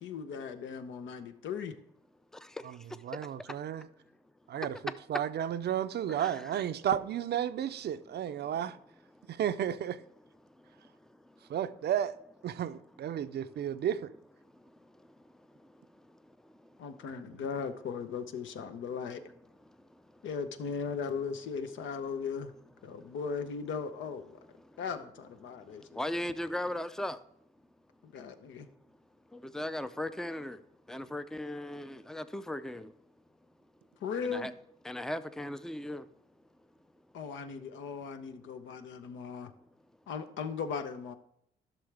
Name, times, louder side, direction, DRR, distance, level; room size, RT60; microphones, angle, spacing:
voice 1, 0.0-1.7 16.8-19.2 20.2-22.5 22.8-24.4 24.8-26.0 28.0-28.7 34.0-34.5 37.1-39.5 40.1-41.1, left 6 dB, 75° left, 0.8 m, -38 dB
voice 2, 3.0-3.9 4.5-4.8 5.1-8.8 9.3-10.0 11.5-12.2 12.4-14.1, right 10 dB, 55° right, 0.5 m, -32 dB
voice 3, 6.1-6.6 26.0-27.2 29.5-30.6 30.9-32.9 34.2-34.5 34.8-36.0, left 1 dB, 5° left, 0.4 m, -37 dB
11.5 x 6.1 x 3.4 m
cardioid pair, 90°, 20 cm